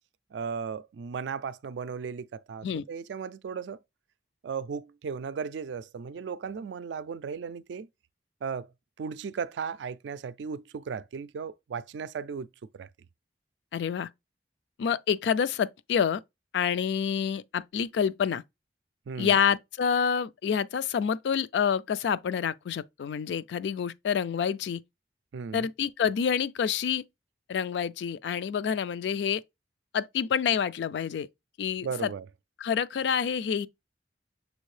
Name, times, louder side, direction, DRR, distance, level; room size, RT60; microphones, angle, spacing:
voice 1, 0.3-3.8 4.4-7.9 8.4-8.7 9.0-12.5 12.7-12.9 19.1-19.4 25.3-25.7 31.8-32.3, right 6 dB, 80° right, 0.3 m, -36 dB
voice 2, 13.7-14.1 14.8-16.2 16.5-18.4 19.2-24.8 25.5-27.0 27.5-29.4 29.9-31.3 31.6-32.1 32.6-33.7, left 7 dB, 70° left, 0.3 m, -27 dB
6.3 x 2.5 x 3.2 m
head